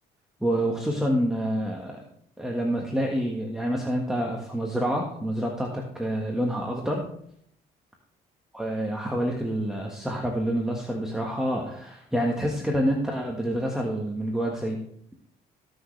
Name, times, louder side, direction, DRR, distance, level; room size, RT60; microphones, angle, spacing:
voice 1, 0.4-2.0 2.4-7.0 8.5-14.8, equal, 5° right, -1 dB, 1.6 m, -27 dB
19.0 x 6.5 x 3.3 m, 0.68 s
cardioid pair, 110°, 17 cm